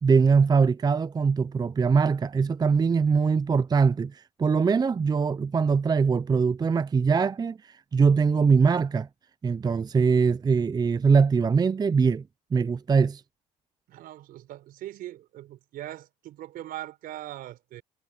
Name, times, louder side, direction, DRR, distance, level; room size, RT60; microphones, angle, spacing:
voice 1, 0.0-9.1 9.4-12.2 12.5-13.2, right 5 dB, 25° right, 0.6 m, -22 dB
voice 2, 13.9-17.8, right 14 dB, 70° right, 4.9 m, -40 dB
supercardioid pair, 80°, 16 cm